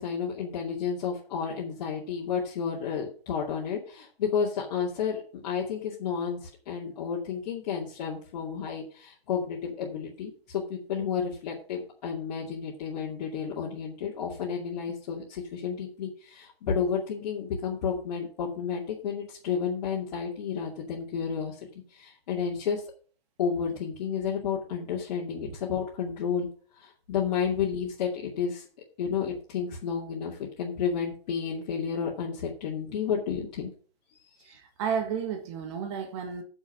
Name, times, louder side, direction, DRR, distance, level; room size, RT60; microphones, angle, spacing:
voice 1, 0.0-21.5 21.9-22.8 23.4-26.5 26.8-28.6 29.0-33.7, left 7 dB, 40° left, 2.4 m, -31 dB
voice 2, 34.5-36.4, right 7 dB, 30° right, 1.8 m, -32 dB
8.8 x 7.2 x 6.2 m
figure-of-eight pair, 140°, 31 cm